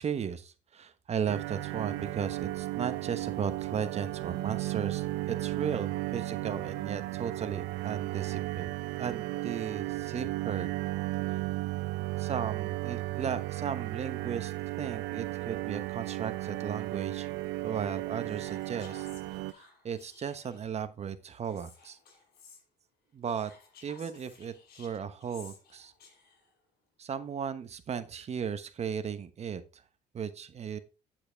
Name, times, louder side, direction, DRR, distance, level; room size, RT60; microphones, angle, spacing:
voice 1, 0.0-8.7 9.0-10.7 12.2-17.3 17.6-19.1 19.5-22.0 23.1-23.5 23.8-25.9 27.0-29.8 30.1-30.8, right 7 dB, 40° right, 11 dB, 1.1 m, -36 dB
sound 1, 1.3-19.5, right 18 dB, 85° right, 0.5 m, -35 dB
Whispering, 18.2-20.7 21.4-22.6 23.2-26.5, left 5 dB, 65° left, 6.3 m, -56 dB
9.0 x 7.8 x 3.4 m, 0.30 s
cardioid pair, 110°, 17 cm